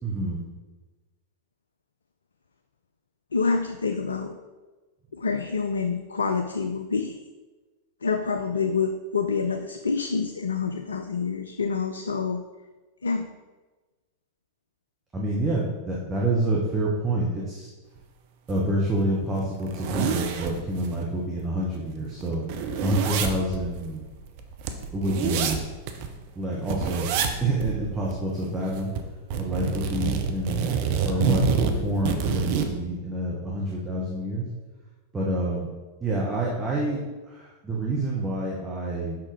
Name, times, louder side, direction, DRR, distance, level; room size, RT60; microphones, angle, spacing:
voice 1, 0.0-0.4 15.1-17.7 18.5-22.4 22.8-24.0 24.9-25.6 26.3-27.1 27.4-28.9 29.4-30.8 31.0-34.4 35.1-35.7 36.0-39.2, right 1 dB, 15° right, -4 dB, 1.2 m, -27 dB
voice 2, 3.3-4.3 5.1-7.2 8.0-12.4 13.0-13.3, left 5 dB, 75° left, 7 dB, 0.4 m, -27 dB
sound 1, 18.5-18.6 19.0-19.1 19.4-21.0 21.4-21.5 21.7-26.1 26.7-27.4 27.6-27.8 28.1-29.0 29.3-32.7, right 6 dB, 50° right, 0.7 m, -27 dB
6.5 x 5.8 x 3.4 m, 1.2 s
figure-of-eight pair, 90°, 0 cm